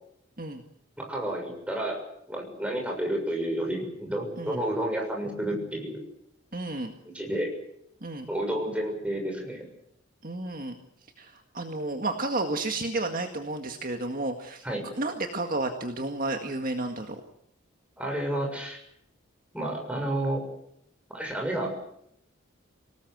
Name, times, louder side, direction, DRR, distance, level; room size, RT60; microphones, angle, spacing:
voice 1, 1.0-2.0 2.3-6.0 7.0-7.5 8.3-9.6 14.6-14.9 18.0-18.8 19.5-20.4 21.1-21.7, right 1 dB, 5° right, 1 dB, 6.6 m, -30 dB
voice 2, 6.5-6.9 8.0-8.3 10.2-10.7 11.2-14.7 15.0-17.2, right 2 dB, 45° right, 5 dB, 1.9 m, -31 dB
27.0 x 18.5 x 7.9 m, 0.73 s
head